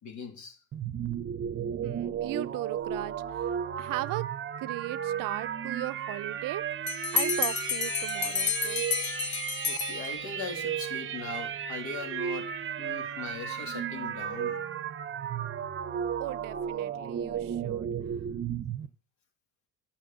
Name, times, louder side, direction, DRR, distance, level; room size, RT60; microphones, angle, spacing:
voice 1, 0.0-0.6 5.1-5.2 9.6-14.6, left 5 dB, 65° left, 3.1 m, -40 dB
sound 1, 0.7-18.9, right 8 dB, 40° right, 0.8 m, -34 dB
voice 2, 1.8-4.3 4.6-6.6 7.1-8.8 16.2-17.9, right 18 dB, 80° right, 0.6 m, -37 dB
Bell, 6.9-10.5, left 6 dB, 35° left, 1.0 m, -31 dB
10.5 x 6.0 x 7.5 m
cardioid pair, 140°, 32 cm